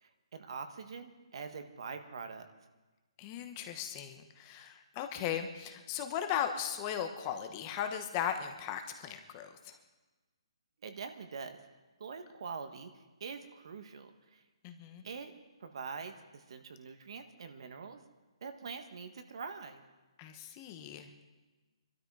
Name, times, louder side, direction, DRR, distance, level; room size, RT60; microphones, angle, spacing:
voice 1, 0.0-2.5 10.8-11.6 12.0-12.9 13.2-14.4 15.0-15.3 15.6-18.0 18.4-19.8, right 5 dB, 55° right, 7 dB, 1.5 m, -44 dB
voice 2, 3.2-9.8 14.6-15.0 20.2-21.1, left 9 dB, 20° left, 7 dB, 1.0 m, -37 dB
22.0 x 12.5 x 4.9 m, 1.2 s
hypercardioid pair, 165°, 3 cm